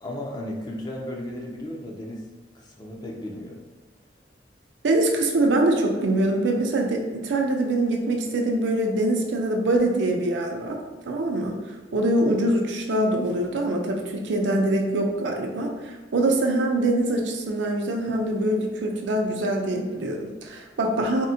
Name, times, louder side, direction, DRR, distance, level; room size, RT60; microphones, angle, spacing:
voice 1, 0.0-2.3 2.5-3.6, left 1 dB, 25° left, -1 dB, 0.4 m, -35 dB
voice 2, 4.8-10.8 11.1-11.6 11.9-21.3, right 1 dB, 75° right, 2 dB, 0.5 m, -24 dB
3.5 x 2.1 x 2.7 m, 1.3 s
head